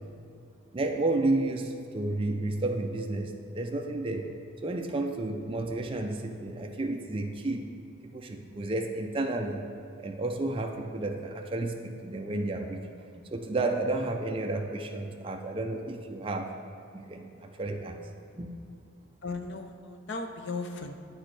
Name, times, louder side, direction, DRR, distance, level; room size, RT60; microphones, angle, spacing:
voice 1, 0.7-4.3 4.6-7.7 8.0-9.7 10.0-12.9 13.1-16.5 16.9-18.0 18.3-18.5, right 2 dB, 25° right, 2 dB, 0.4 m, -31 dB
voice 2, 19.2-20.9, left 3 dB, 55° left, 6 dB, 0.5 m, -36 dB
8.7 x 6.2 x 3.2 m, 2.6 s
head